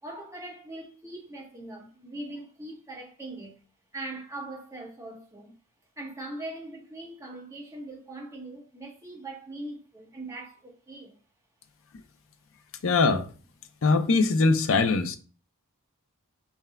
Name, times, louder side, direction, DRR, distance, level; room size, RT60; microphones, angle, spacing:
voice 1, 0.0-3.6 3.9-5.5 6.0-11.2, right 2 dB, 15° right, 1.2 m, -41 dB
voice 2, 12.8-13.3 13.8-15.2, left 3 dB, 65° left, 0.6 m, -22 dB
5.6 x 3.5 x 2.3 m
head